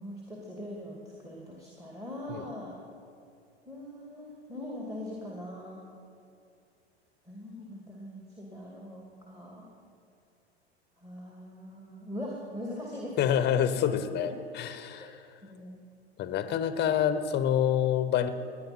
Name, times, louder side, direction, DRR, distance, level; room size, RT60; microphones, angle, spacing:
voice 1, 0.0-2.8 3.7-5.8 7.3-9.7 11.0-13.4 14.2-14.3 14.9-15.1 15.4-15.8, left 1 dB, 10° right, -2 dB, 2.5 m, -41 dB
voice 2, 13.2-15.2 16.2-18.3, left 9 dB, 30° left, 11 dB, 1.0 m, -27 dB
17.0 x 10.5 x 6.1 m, 2.4 s
hypercardioid pair, 95°, 33 cm